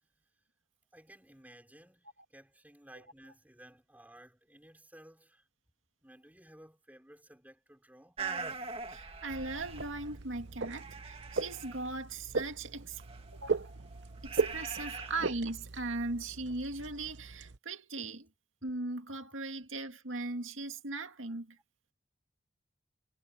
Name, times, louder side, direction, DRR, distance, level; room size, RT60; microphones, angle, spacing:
voice 1, 0.9-5.5 6.0-8.2, right 1 dB, 10° right, 5.0 m, -56 dB
sound 1, 8.2-10.3 10.6-11.9 13.0-15.3, right 4 dB, 30° right, 1.9 m, -43 dB
voice 2, 8.9-13.0 13.3-13.7 14.2-18.3 18.6-21.6, right 3 dB, 90° right, 2.2 m, -39 dB
sound 2, 9.3-17.6, right 4 dB, 60° right, 0.8 m, -38 dB
head